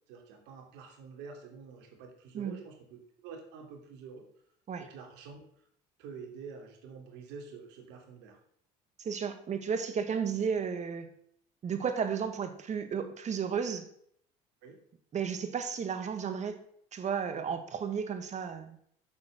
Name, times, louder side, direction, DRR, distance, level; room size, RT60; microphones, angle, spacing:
voice 1, 0.1-4.3 4.8-5.4 6.0-8.4 14.6-14.8, right 5 dB, 75° right, 2 dB, 3.1 m, -47 dB
voice 2, 9.0-11.1 11.6-13.9 15.1-16.6 16.9-18.8, right 6 dB, 40° right, 9 dB, 1.9 m, -33 dB
9.5 x 7.3 x 6.8 m, 0.67 s
supercardioid pair, 90°, 18 cm